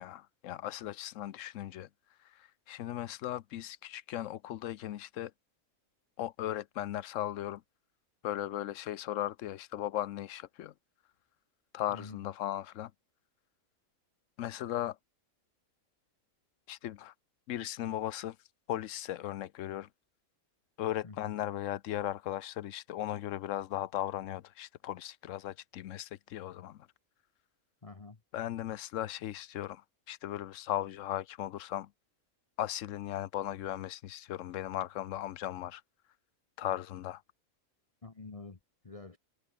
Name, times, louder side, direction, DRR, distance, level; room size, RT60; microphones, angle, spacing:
voice 1, 0.0-1.9 2.2-5.3 6.2-7.6 8.2-10.7 11.7-12.9 14.4-15.0 16.7-17.1 17.5-18.4 18.7-19.9 20.8-26.9 28.3-31.9 32.6-35.8 36.6-37.2, left 12 dB, 65° left, 1.0 m, -37 dB
voice 2, 11.9-12.2 21.0-21.3 27.8-28.2 38.0-38.6 38.8-39.2, left 3 dB, 25° left, 1.0 m, -47 dB
omnidirectional pair, 1.5 m